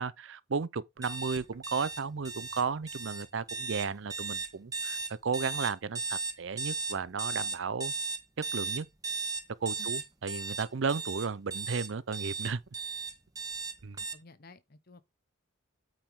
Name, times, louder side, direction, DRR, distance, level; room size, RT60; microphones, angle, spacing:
voice 1, 0.0-7.9 8.5-8.9 9.6-12.6 13.8-14.0, right 5 dB, 60° right, 0.5 m, -34 dB
sound 1, 1.0-14.1, right 4 dB, 15° right, 0.8 m, -36 dB
voice 2, 14.1-15.1, left 2 dB, 45° left, 0.9 m, -54 dB
8.7 x 5.0 x 3.6 m
head